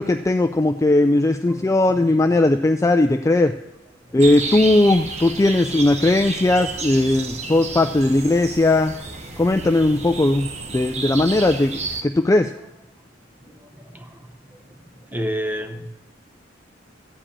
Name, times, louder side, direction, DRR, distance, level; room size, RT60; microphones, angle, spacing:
voice 1, 0.0-3.5 4.1-8.9 9.4-10.5 10.7-12.5, left 2 dB, 15° left, 6 dB, 0.4 m, -18 dB
voice 2, 1.5-2.0 4.1-4.2 13.4-14.6 15.0-15.9, equal, 10° right, 6 dB, 0.9 m, -31 dB
sound 1, 4.2-12.0, right 3 dB, 35° right, 1.0 m, -31 dB
14.0 x 5.0 x 8.7 m, 0.87 s
head